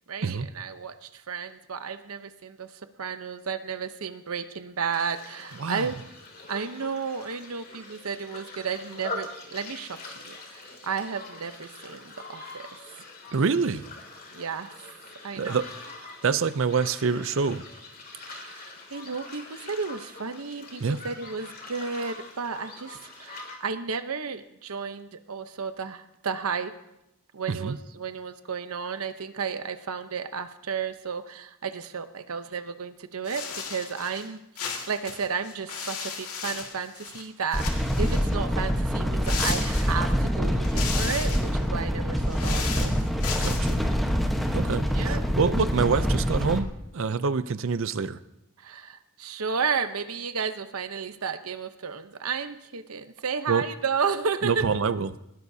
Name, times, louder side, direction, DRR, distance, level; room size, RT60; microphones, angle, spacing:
voice 1, 0.1-6.0 6.5-12.6 14.3-14.7 15.2-15.6 18.1-26.7 27.3-43.1 44.9-45.3 48.6-54.8, right 5 dB, 80° right, 10 dB, 0.8 m, -33 dB
sound 1, 4.9-23.6, left 3 dB, 45° left, 2.6 m, -43 dB
voice 2, 13.3-13.8 15.4-15.7 16.2-17.6 20.8-21.0 27.5-27.8 43.4-43.8 44.5-46.7 46.9-48.2 53.5-53.6 54.4-55.1, right 5 dB, 60° right, 14 dB, 0.5 m, -26 dB
sound 2, 33.3-34.3 34.6-37.3 37.5-38.4 39.2-40.2 40.6-41.5 42.2-43.8, left 6 dB, 80° left, 2.1 m, -35 dB
sound 3, 37.5-46.6, equal, ahead, 1.1 m, -25 dB
20.0 x 16.5 x 2.8 m, 0.86 s
head